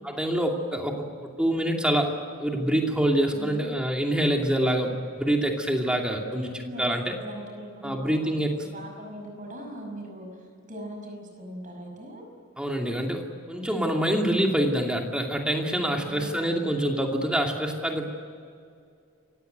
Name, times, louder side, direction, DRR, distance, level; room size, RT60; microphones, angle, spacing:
voice 1, 0.0-6.5 6.8-7.2 7.8-8.6 12.6-18.1, right 1 dB, 5° right, 1 dB, 2.6 m, -26 dB
voice 2, 3.3-3.7 6.3-12.2 15.8-16.8, equal, 35° right, 3 dB, 5.8 m, -40 dB
28.0 x 16.5 x 9.3 m, 2.3 s
head